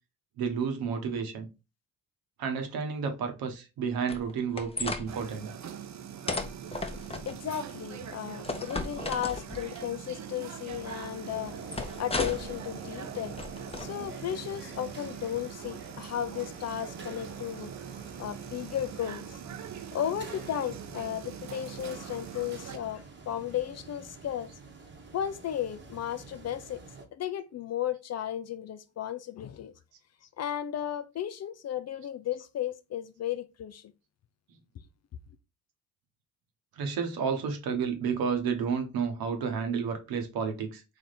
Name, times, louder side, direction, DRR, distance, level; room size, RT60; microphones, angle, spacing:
voice 1, 0.4-1.5 2.4-5.5 36.7-40.8, right 6 dB, 65° right, 1.1 m, -31 dB
sound 1, 4.1-5.1 6.3-7.3 8.4-9.8 11.7-12.5 13.4-13.9, left 3 dB, 15° left, 0.7 m, -34 dB
sound 2, 5.1-22.8, right 9 dB, 45° right, 0.7 m, -43 dB
voice 2, 7.3-13.4 13.8-17.8 18.2-19.4 19.9-24.5 25.1-26.8 27.1-29.7 30.4-33.8, left 10 dB, 45° left, 0.5 m, -34 dB
sound 3, 10.7-27.1, right 3 dB, 30° right, 1.1 m, -47 dB
3.4 x 2.7 x 4.0 m
hypercardioid pair, 50°, 39 cm